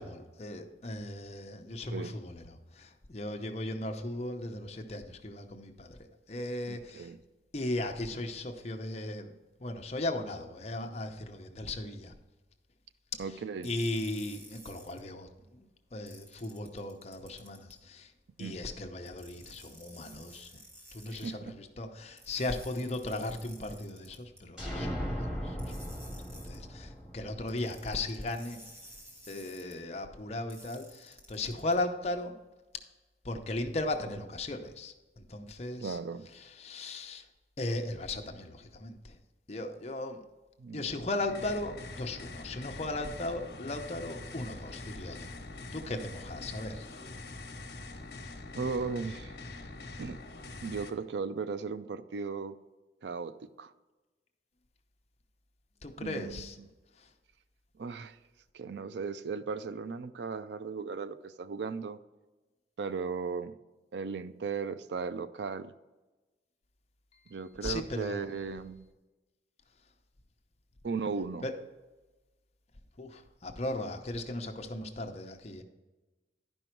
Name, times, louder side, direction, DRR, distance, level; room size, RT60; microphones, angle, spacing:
voice 1, 0.0-6.0 6.3-7.1 7.5-9.3 9.6-12.1 13.1-13.2 13.6-15.6 15.9-18.1 18.4-20.5 20.9-26.1 26.4-28.6 29.3-32.3 33.2-36.0 36.3-37.2 37.6-39.2 39.5-40.2 40.7-45.3 45.7-46.9 55.8-56.6 57.0-57.1 67.6-68.3 71.4-71.5 73.0-75.6, left 2 dB, 35° left, 4 dB, 0.7 m, -37 dB
voice 2, 6.7-7.2 13.2-13.7 18.4-18.6 21.1-21.5 35.8-36.3 40.6-40.9 48.5-49.3 50.0-50.2 50.5-52.6 53.0-53.7 56.0-56.5 57.8-58.2 58.5-62.0 62.8-63.5 63.9-65.7 67.3-68.8 70.8-71.4, right 5 dB, 75° right, 13 dB, 0.4 m, -36 dB
sound 1, 13.6-15.0 16.1-17.8 19.1-21.3 22.2-24.4 25.6-26.6 27.5-29.7 30.5-31.7, equal, 35° right, 1.9 m, -54 dB
sound 2, 24.6-28.3, equal, 5° right, 1.8 m, -38 dB
sound 3, 41.2-50.9, left 2 dB, 60° left, 1.0 m, -44 dB
11.0 x 5.4 x 4.5 m, 1.2 s
head